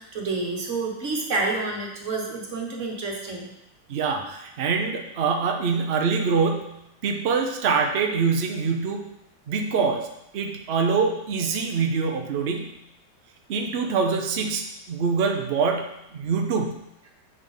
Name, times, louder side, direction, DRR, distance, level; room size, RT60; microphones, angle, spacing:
voice 1, 0.0-3.5, right 3 dB, 45° right, -1 dB, 1.5 m, -29 dB
voice 2, 3.9-9.1 9.5-10.1 10.3-12.8 13.5-16.8, right 5 dB, 90° right, 3 dB, 0.5 m, -25 dB
7.0 x 3.7 x 5.3 m, 0.83 s
omnidirectional pair, 2.1 m